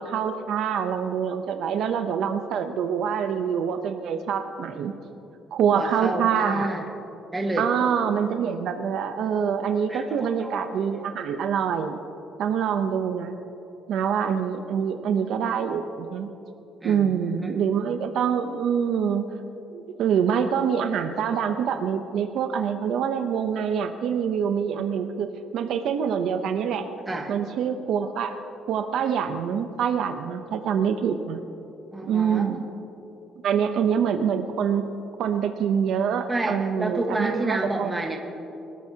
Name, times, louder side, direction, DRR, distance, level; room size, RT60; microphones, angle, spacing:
voice 1, 0.0-4.9 5.5-6.7 7.6-12.0 12.4-13.4 13.9-16.3 16.8-19.3 19.7-25.3 25.5-26.9 27.3-28.3 28.7-31.4 32.1-32.7 33.4-34.8 35.2-37.9, right 7 dB, 60° right, 7 dB, 0.7 m, -25 dB
voice 2, 5.7-6.8 7.3-7.7 9.9-11.0 16.8-17.6 27.1-27.3 31.9-32.5 36.3-38.2, right 2 dB, 10° right, 1 dB, 1.3 m, -30 dB
23.5 x 13.0 x 2.8 m, 3.0 s
cardioid pair, 175°, 0 cm